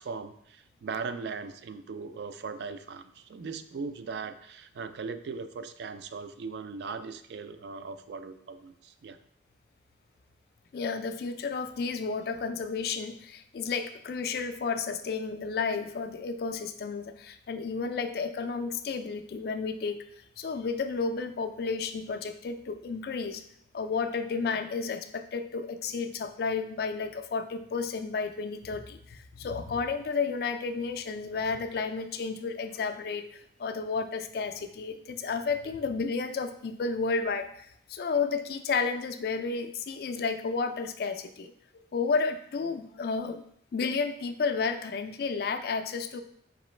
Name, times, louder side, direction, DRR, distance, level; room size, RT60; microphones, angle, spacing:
voice 1, 0.0-9.2, right 4 dB, 65° right, 10 dB, 0.3 m, -39 dB
voice 2, 10.7-20.0 20.4-23.4 23.7-41.5 41.9-43.4 43.7-46.2, left 4 dB, 55° left, 8 dB, 0.3 m, -32 dB
4.8 x 3.0 x 3.2 m, 0.68 s
head